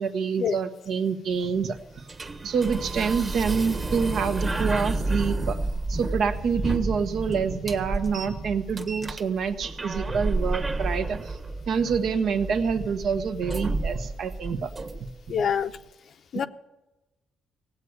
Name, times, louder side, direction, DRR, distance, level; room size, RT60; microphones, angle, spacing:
voice 1, 0.0-1.8 2.4-5.6 5.9-11.4 11.7-14.7, right 6 dB, 70° right, 7 dB, 1.3 m, -27 dB
sound 1, 1.3-15.3, right 2 dB, 30° right, 1.5 m, -31 dB
voice 2, 15.3-15.7 16.3-16.5, left 7 dB, 60° left, 10 dB, 0.8 m, -25 dB
17.0 x 8.3 x 9.5 m, 1.0 s
cardioid pair, 90°, 0 cm